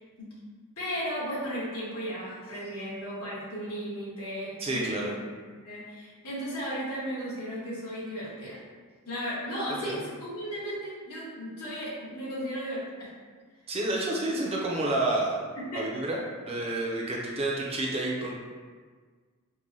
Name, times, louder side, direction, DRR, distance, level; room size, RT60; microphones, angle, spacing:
voice 1, 0.8-5.1 5.4-8.6 9.1-13.1 15.5-15.8, equal, 70° left, -8 dB, 1.3 m, -35 dB
voice 2, 4.6-5.1 9.8-10.0 13.7-15.4 15.7-18.3, right 2 dB, 25° right, -3 dB, 0.5 m, -29 dB
4.6 x 2.2 x 2.6 m, 1.5 s
head